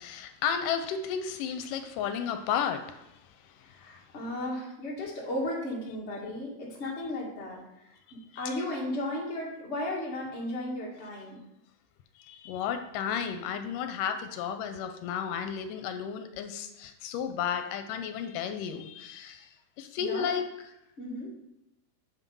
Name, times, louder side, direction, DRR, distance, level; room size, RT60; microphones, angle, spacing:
voice 1, 0.0-3.1 3.4-3.5 8.3-8.5 12.2-19.5 19.8-20.4, left 8 dB, 80° left, 7 dB, 2.2 m, -33 dB
voice 2, 3.6-7.6 7.8-11.4 20.0-20.3 21.0-21.3, left 1 dB, 25° left, -4 dB, 1.7 m, -35 dB
7.1 x 6.1 x 5.4 m, 0.87 s
omnidirectional pair, 3.8 m